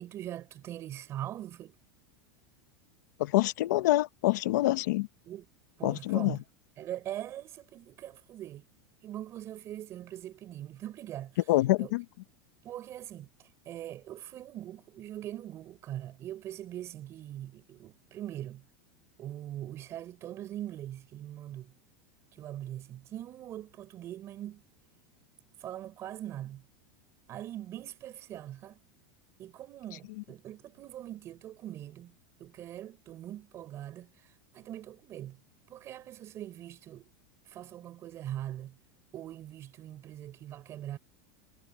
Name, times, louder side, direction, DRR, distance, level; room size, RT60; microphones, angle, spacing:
voice 1, 0.0-1.8 5.2-5.5 5.8-6.4 6.8-8.7 9.0-11.4 11.8-11.9 12.6-18.6 19.2-21.7 22.3-24.6 25.6-26.6 27.3-28.8 29.4-32.1 32.4-35.4 35.7-37.1 37.5-38.8 39.1-41.0, right 12 dB, 25° right, 5.8 m, -42 dB
voice 2, 3.2-5.1 5.8-6.4 11.5-12.0, left 17 dB, 65° left, 1.2 m, -26 dB
supercardioid pair, 175°, 11 cm